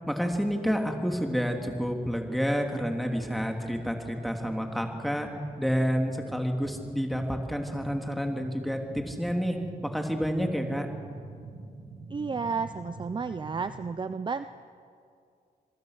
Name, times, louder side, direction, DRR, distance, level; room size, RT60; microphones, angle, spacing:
voice 1, 0.1-5.3 5.6-9.6 9.8-10.9, equal, ahead, 3 dB, 2.7 m, -29 dB
sound 1, 0.7-13.9, right 2 dB, 45° right, 6.8 m, -46 dB
voice 2, 12.1-14.4, right 5 dB, 30° right, 11 dB, 0.6 m, -32 dB
27.0 x 22.0 x 6.6 m, 2.3 s
cardioid pair, 105°, 16 cm